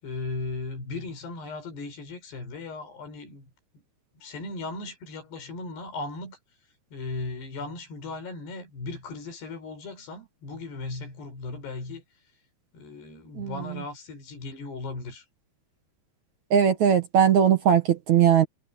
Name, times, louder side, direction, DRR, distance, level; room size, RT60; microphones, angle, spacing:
voice 1, 0.0-3.5 3.7-3.8 4.1-6.4 6.9-12.0 12.7-15.3, left 3 dB, 85° left, 7.4 m, -37 dB
voice 2, 16.5-18.5, right 8 dB, 55° right, 2.5 m, -19 dB
omnidirectional pair, 4.6 m